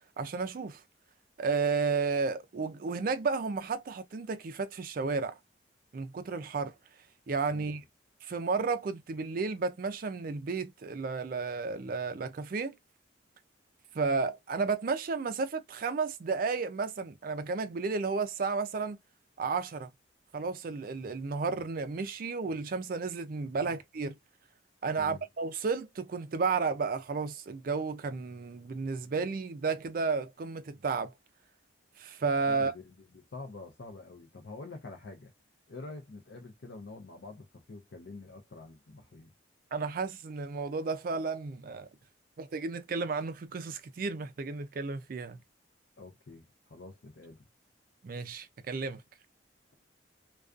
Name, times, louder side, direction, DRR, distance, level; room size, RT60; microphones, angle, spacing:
voice 1, 0.2-0.8 1.4-5.4 5.9-6.7 7.3-7.8 8.2-12.8 13.9-19.0 19.4-19.9 20.3-24.1 24.8-31.1 32.0-32.7 39.7-41.9 42.4-45.4 48.0-49.0, right 4 dB, 45° right, 0.4 m, -32 dB
voice 2, 7.5-7.8 23.6-23.8 25.0-25.2 32.5-35.3 35.7-39.3 46.0-47.5, left 3 dB, 65° left, 0.6 m, -47 dB
2.4 x 2.3 x 2.4 m
head